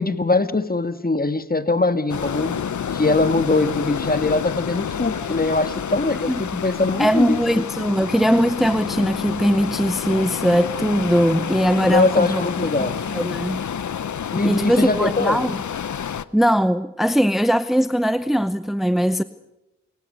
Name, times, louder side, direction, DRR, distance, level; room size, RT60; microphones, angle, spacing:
voice 1, 0.0-2.6 2.9-7.6 11.9-13.0 14.3-15.4, left 2 dB, 30° left, 1.6 m, -22 dB
sound 1, 2.1-16.2, left 8 dB, 70° left, 0.8 m, -29 dB
voice 2, 6.3-6.6 7.0-12.4 12.8-13.6 14.4-15.6 16.3-19.2, equal, ahead, 0.7 m, -20 dB
28.0 x 16.5 x 6.8 m
cardioid pair, 50°, 31 cm